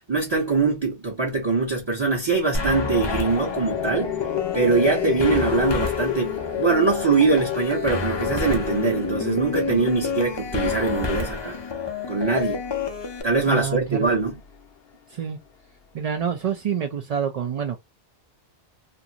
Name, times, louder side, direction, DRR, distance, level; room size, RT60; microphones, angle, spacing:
voice 1, 0.1-4.1 4.5-11.6 12.1-12.6 13.2-14.4, right 4 dB, 30° right, 0.7 m, -22 dB
sound 1, 2.5-13.2, left 5 dB, 35° left, 0.4 m, -29 dB
sound 2, 3.0-14.6, left 11 dB, 65° left, 0.7 m, -32 dB
voice 2, 13.5-14.1 15.1-15.4 15.9-17.8, right 8 dB, 60° right, 0.4 m, -27 dB
2.5 x 2.5 x 2.7 m
omnidirectional pair, 1.2 m